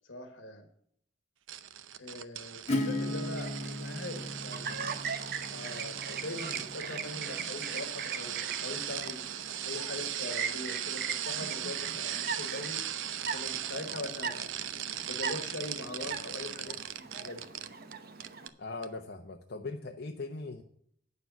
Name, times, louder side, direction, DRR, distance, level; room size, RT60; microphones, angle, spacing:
voice 1, 0.0-0.7 2.0-4.9 5.5-9.2 9.6-12.8 13.3-14.5 15.0-17.4, left 2 dB, 75° left, 6 dB, 1.6 m, -42 dB
sound 1, 1.5-17.9 18.2-18.5 18.8-18.9, right 11 dB, 85° right, 0.6 m, -38 dB
Acoustic guitar / Strum, 2.7-8.2, left 1 dB, 35° left, 2.5 m, -37 dB
Chirp tweet, 3.3-18.5, right 5 dB, 55° right, 1.1 m, -40 dB
voice 2, 18.6-20.6, left 3 dB, 55° left, 2 dB, 0.8 m, -40 dB
9.3 x 6.8 x 7.1 m, 0.68 s
head